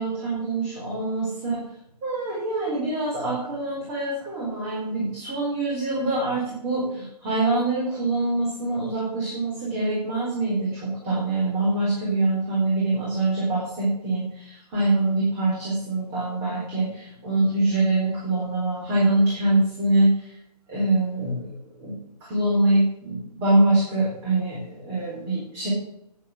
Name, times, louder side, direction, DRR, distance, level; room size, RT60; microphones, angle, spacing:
voice 1, 0.0-1.6 2.0-20.3 20.7-21.5 21.8-21.9 22.2-25.7, right 2 dB, 15° right, -6 dB, 4.4 m, -24 dB
10.5 x 9.2 x 7.7 m, 0.77 s
figure-of-eight pair, 150°, 21 cm